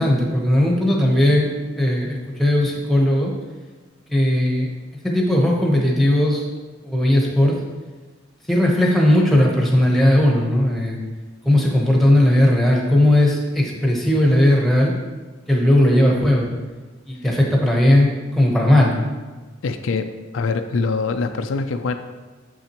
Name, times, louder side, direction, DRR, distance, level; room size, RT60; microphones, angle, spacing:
voice 1, 0.0-1.5 1.8-3.3 4.1-4.7 5.0-6.4 6.8-7.6 8.5-11.0 11.4-14.9 15.5-16.5 17.1-19.1, left 1 dB, ahead, -2 dB, 0.9 m, -17 dB
voice 2, 19.6-21.9, left 4 dB, 80° left, 8 dB, 0.4 m, -24 dB
7.0 x 5.7 x 3.0 m, 1.3 s
head